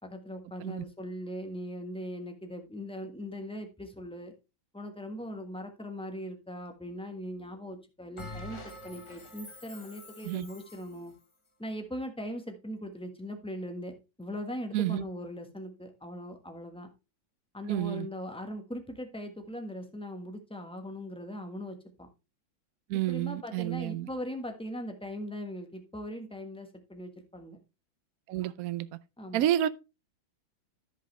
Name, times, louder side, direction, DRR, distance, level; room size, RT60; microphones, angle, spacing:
voice 1, 0.0-4.3 4.7-11.1 11.6-13.9 14.2-16.9 17.5-22.1 22.9-27.6 29.2-29.5, equal, 5° left, 1.1 m, -40 dB
Bell, 8.2-11.0, left 1 dB, 25° left, 0.6 m, -46 dB
voice 2, 14.7-15.0 17.7-18.1 22.9-24.1 28.3-28.9 29.3-29.7, right 13 dB, 85° right, 0.8 m, -29 dB
13.5 x 5.4 x 3.2 m
omnidirectional pair, 2.1 m